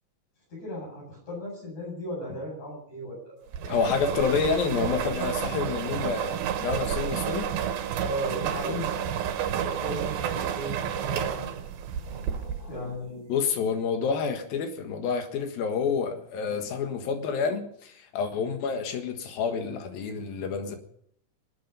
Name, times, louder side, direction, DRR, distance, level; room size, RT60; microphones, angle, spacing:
voice 1, 0.5-3.5 8.0-9.0 9.6-11.6 12.0-13.3, equal, 55° left, -3 dB, 9.3 m, -36 dB
sound 1, 3.5-12.8, right 9 dB, 90° right, 3.0 m, -30 dB
voice 2, 3.7-7.6 13.3-20.8, left 6 dB, 80° left, 6 dB, 3.4 m, -28 dB
24.5 x 8.9 x 5.5 m, 0.66 s
omnidirectional pair, 4.1 m